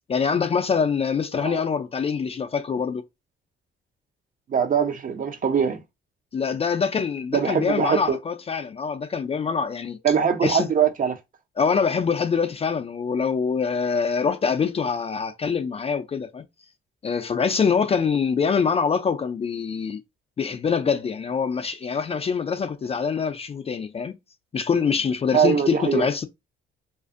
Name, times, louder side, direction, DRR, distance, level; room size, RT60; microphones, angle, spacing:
voice 1, 0.1-3.0 6.3-10.0 10.4-10.7 11.6-16.4 17.0-20.0 20.4-24.1 24.5-26.3, left 6 dB, 30° left, 0.3 m, -24 dB
voice 2, 4.5-5.8 7.3-8.2 10.0-11.2 25.3-26.1, right 7 dB, 45° right, 0.6 m, -22 dB
2.4 x 2.4 x 2.5 m
cardioid pair, 90°, 20 cm